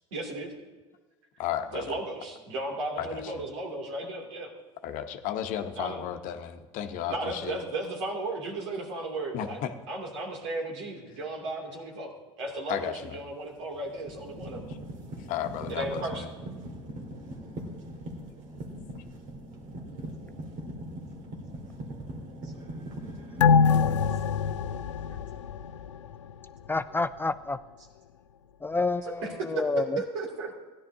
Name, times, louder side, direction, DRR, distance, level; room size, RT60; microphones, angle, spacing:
voice 1, 0.1-0.5 1.7-4.5 5.8-6.0 7.1-9.6 9.9-14.7 15.7-16.2 22.4-22.5 29.0-29.3 29.5-30.5, right 2 dB, 75° right, -1 dB, 2.8 m, -35 dB
voice 2, 1.4-1.9 3.0-3.4 4.8-7.6 9.3-9.7 12.7-13.2 14.7-14.8 15.3-16.3, left 10 dB, 60° left, 7 dB, 0.9 m, -34 dB
sound 1, 13.1-13.3 13.8-23.8, right 1 dB, 55° right, 2.1 m, -41 dB
sound 2, 23.4-26.3 26.7-26.8, left 6 dB, 90° left, 0.4 m, -24 dB
voice 3, 26.7-27.6 28.6-30.0, left 3 dB, 15° left, 12 dB, 0.3 m, -29 dB
16.5 x 10.5 x 2.8 m, 1.3 s
hypercardioid pair, 70°, 15 cm